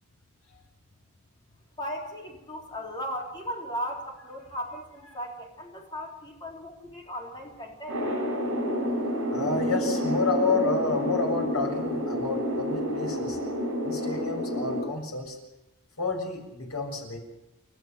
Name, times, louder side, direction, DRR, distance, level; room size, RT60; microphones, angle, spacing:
voice 1, 1.8-8.0, equal, 20° left, 0 dB, 4.0 m, -37 dB
sound 1, 7.9-14.8, equal, 60° right, 7.2 m, -29 dB
voice 2, 9.3-13.4 13.8-15.4 16.0-17.2, left 3 dB, 80° left, 2 dB, 6.9 m, -29 dB
29.5 x 13.5 x 7.7 m, 0.97 s
head